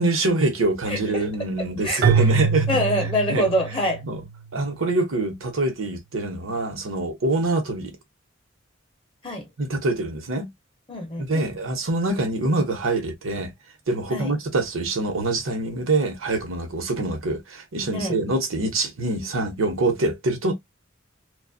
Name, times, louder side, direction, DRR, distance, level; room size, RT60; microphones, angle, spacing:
voice 1, 0.0-2.7 3.3-3.5 4.1-4.2 4.5-7.9 9.6-10.5 11.2-13.5 13.9-20.5, right 2 dB, 85° right, 0.9 m, -25 dB
voice 2, 0.9-1.3 1.6-2.3 2.7-4.0 9.2-9.5 10.9-11.4 14.1-14.3 17.9-18.2, equal, 25° left, 0.5 m, -26 dB
Keyboard (musical), 2.0-4.3, right 6 dB, 50° right, 0.3 m, -23 dB
2.4 x 2.2 x 2.5 m
head